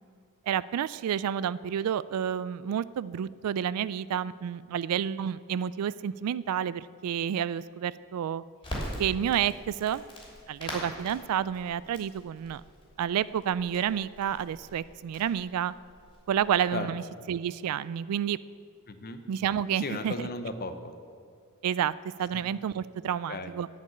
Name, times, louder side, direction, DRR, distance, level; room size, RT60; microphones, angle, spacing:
voice 1, 0.5-8.4 9.0-10.0 10.5-12.6 13.0-15.7 16.3-18.4 19.3-20.1 21.6-21.9 22.2-23.7, right 9 dB, 80° right, 18 dB, 0.3 m, -30 dB
Crackle, 8.6-16.5, equal, 20° left, 3.0 m, -43 dB
voice 2, 18.9-19.2 19.8-20.9 22.3-22.4 23.3-23.5, left 2 dB, 45° left, 9 dB, 0.7 m, -35 dB
11.5 x 5.3 x 8.5 m, 2.2 s
head